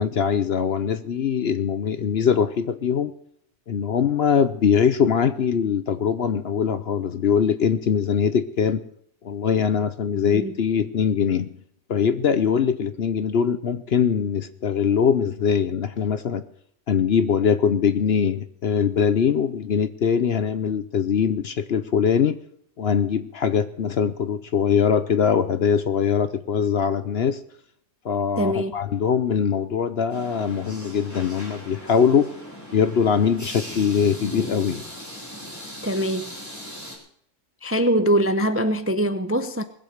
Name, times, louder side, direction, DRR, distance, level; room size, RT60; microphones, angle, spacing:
voice 1, 0.0-3.1 3.7-8.8 9.2-11.5 11.9-16.4 16.9-22.4 22.8-27.4 28.0-32.3 32.7-34.8, left 7 dB, 55° left, 0.8 m, -22 dB
voice 2, 10.1-10.5 28.4-28.7 35.8-36.3 37.6-39.6, right 1 dB, 15° right, 0.5 m, -23 dB
sound 1, 30.1-37.0, equal, 10° left, 4.2 m, -38 dB
20.5 x 7.9 x 6.6 m
omnidirectional pair, 1.5 m